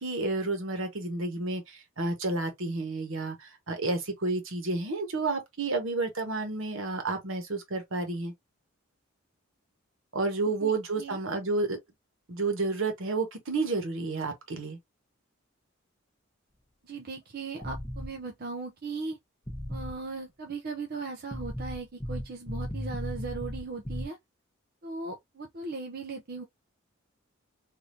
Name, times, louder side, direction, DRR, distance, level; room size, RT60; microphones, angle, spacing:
voice 1, 0.0-8.3 10.1-11.8 12.3-14.8, right 3 dB, 70° right, 1.2 m, -30 dB
voice 2, 10.6-11.2 16.8-19.2 19.7-24.2 24.8-26.4, right 3 dB, 45° right, 0.5 m, -38 dB
sound 1, 17.6-18.1 19.5-20.0 21.3-24.0, equal, 15° left, 0.7 m, -35 dB
3.4 x 2.6 x 2.6 m
head